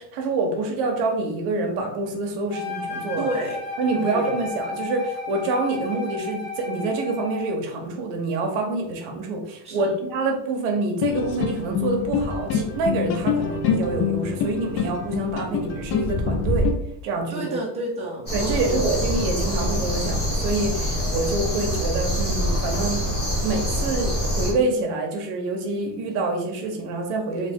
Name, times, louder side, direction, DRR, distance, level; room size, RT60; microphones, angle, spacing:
voice 1, 0.0-3.3 3.8-16.7 17.0-17.5 18.3-23.1 23.4-27.5, right 3 dB, 70° right, 2 dB, 0.9 m, -26 dB
Wind instrument woodwind instrument, 2.5-7.6, left 3 dB, 55° left, 1.3 m, -33 dB
voice 2, 3.2-3.6 3.9-4.4 9.6-9.9 17.3-18.8, right 2 dB, 15° right, -5 dB, 0.9 m, -30 dB
sound 1, 11.0-16.7, left 5 dB, 70° left, 0.8 m, -25 dB
sound 2, 18.3-24.5, equal, 25° left, 1.3 m, -25 dB
3.3 x 2.6 x 3.5 m, 0.78 s
cardioid pair, 160°, 42 cm